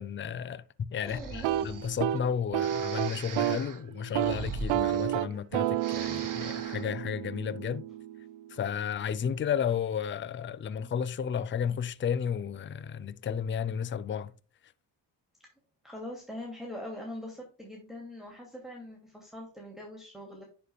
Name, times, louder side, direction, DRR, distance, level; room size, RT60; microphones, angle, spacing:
voice 1, 0.0-7.8 8.5-14.3, left 7 dB, 25° left, 0.5 m, -33 dB
voice 2, 1.0-1.6 15.8-20.4, left 1 dB, ahead, 2.6 m, -42 dB
Breathing, 1.0-2.0 2.6-5.5 5.7-6.9, right 5 dB, 45° right, 1.4 m, -41 dB
sound 1, 1.3-3.7 4.0-4.4 4.7-8.5, right 13 dB, 75° right, 0.6 m, -31 dB
10.0 x 5.3 x 2.3 m
supercardioid pair, 60°, 45 cm